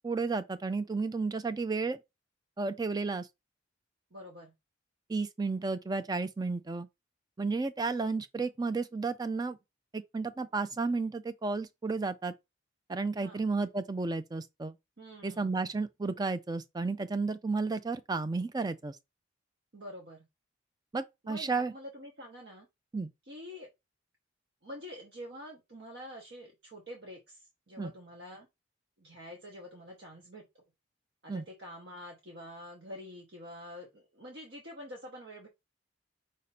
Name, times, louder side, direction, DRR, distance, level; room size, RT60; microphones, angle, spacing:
voice 1, 0.0-2.0 2.6-3.3 5.1-6.9 7.4-9.6 9.9-12.3 12.9-14.7 15.2-19.0 20.9-21.7 22.9-23.1 27.8-27.9 31.3-31.4, right 3 dB, 20° right, 0.3 m, -32 dB
voice 2, 4.1-4.5 13.2-13.4 15.0-15.6 19.7-20.2 21.2-22.7 23.3-23.7 24.6-28.5 29.0-30.6 31.2-35.5, equal, 60° right, 1.0 m, -47 dB
5.1 x 2.6 x 4.1 m
head